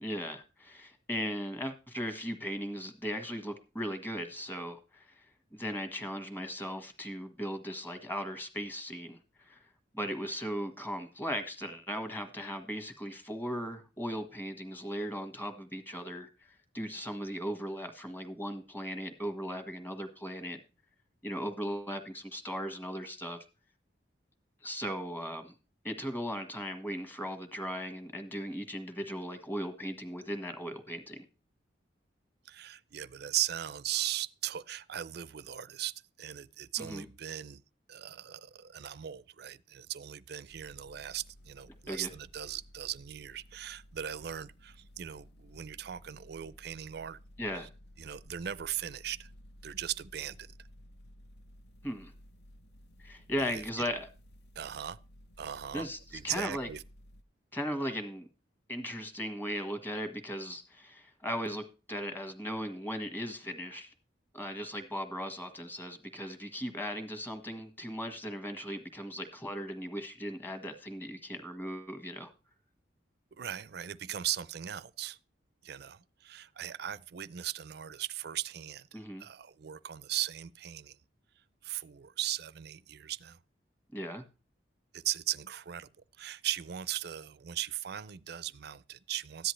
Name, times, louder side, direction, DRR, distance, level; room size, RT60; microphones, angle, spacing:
voice 1, 0.0-5.2 5.5-20.6 21.2-23.4 24.6-25.5 25.8-31.2 36.8-37.0 41.9-42.1 47.4-47.7 51.8-52.1 53.0-54.1 55.7-56.0 56.2-56.7 57.5-58.3 58.7-63.9 64.3-72.3 78.9-79.2 83.9-84.2, equal, 10° left, 1.5 m, -38 dB
voice 2, 32.5-37.6 37.9-47.2 48.0-49.3 49.6-50.5 53.4-53.9 54.6-55.0 55.4-55.9 56.1-56.8 73.4-75.2 75.6-81.0 81.6-83.4 84.9-85.9 86.2-89.5, right 11 dB, 60° right, 0.5 m, -38 dB
sound 1, 40.5-57.2, equal, 65° left, 0.7 m, -56 dB
14.0 x 10.0 x 3.2 m
head